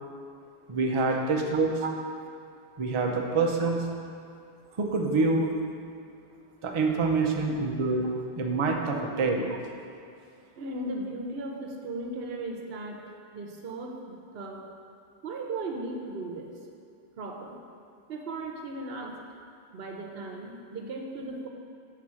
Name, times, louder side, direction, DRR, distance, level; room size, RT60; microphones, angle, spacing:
voice 1, 0.7-1.7 2.8-3.8 4.8-5.5 6.6-8.1 8.4-9.5, right 3 dB, 35° right, 1 dB, 0.5 m, -26 dB
voice 2, 10.6-13.0 13.3-14.7 15.2-16.5 17.2-17.6 18.1-19.2 19.7-21.5, right 2 dB, 75° right, 1 dB, 0.9 m, -37 dB
5.9 x 4.1 x 6.2 m, 2.4 s
omnidirectional pair, 1.0 m